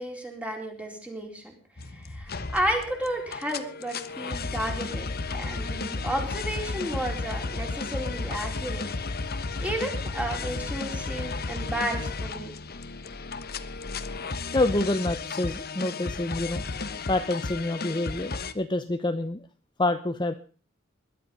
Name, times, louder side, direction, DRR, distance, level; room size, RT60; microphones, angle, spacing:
voice 1, 0.0-1.5 1.9-8.9 9.6-12.5, equal, 5° right, 1 dB, 4.2 m, -32 dB
sound 1, 1.8-18.5, left 3 dB, 50° left, 1.1 m, -33 dB
voice 2, 14.5-16.6 17.1-19.4 19.8-20.3, left 2 dB, 20° left, 8 dB, 0.7 m, -27 dB
20.5 x 12.0 x 5.4 m, 0.41 s
head